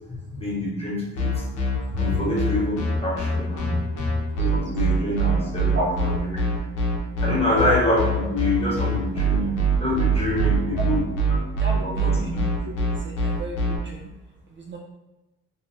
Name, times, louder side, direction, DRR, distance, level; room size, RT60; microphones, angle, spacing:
voice 1, 0.1-1.4 1.9-4.1 4.3-6.3 7.2-11.1 11.8-12.7, left 1 dB, 20° left, -5 dB, 1.1 m, -26 dB
sound 1, 1.2-13.8, right 2 dB, 90° left, 0.7 m, -23 dB
voice 2, 11.6-12.3 13.2-14.1 14.6-14.8, right 2 dB, 40° right, 0 dB, 0.4 m, -32 dB
2.7 x 2.4 x 3.1 m, 1.0 s
cardioid pair, 90°, 30 cm